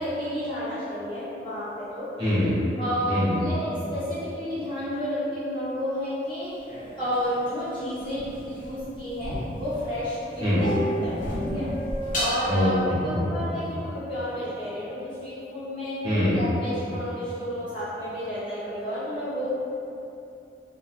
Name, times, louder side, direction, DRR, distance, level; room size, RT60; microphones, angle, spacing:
voice 1, 0.0-2.1 2.8-6.5 7.0-10.7 11.0-11.7 12.1-16.0 16.4-19.5, equal, 30° left, -13 dB, 1.0 m, -31 dB
voice 2, 2.2-2.6 3.1-3.4 10.4-10.7 12.5-13.6 16.0-16.4, left 1 dB, 25° right, -11 dB, 0.8 m, -24 dB
sound 1, 6.7-9.9 10.2-12.4, equal, 45° left, 0.8 m, -31 dB
2.7 x 2.3 x 3.2 m, 2.8 s
head